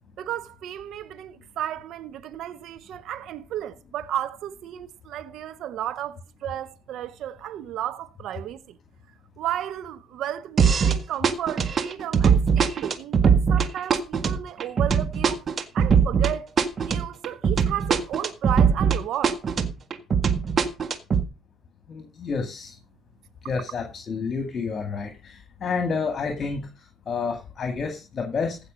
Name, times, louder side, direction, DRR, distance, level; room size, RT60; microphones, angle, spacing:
voice 1, 0.2-8.8 9.4-15.4 15.7-16.5 16.8-19.4, right 11 dB, 65° right, 0.8 m, -33 dB
sound 1, 10.6-11.0 11.2-19.0 19.2-21.2, right 6 dB, 45° right, 1.6 m, -21 dB
voice 2, 21.9-22.8 23.4-28.6, left 5 dB, 45° left, 2.1 m, -30 dB
15.5 x 5.9 x 5.2 m
hypercardioid pair, 65°, 0 cm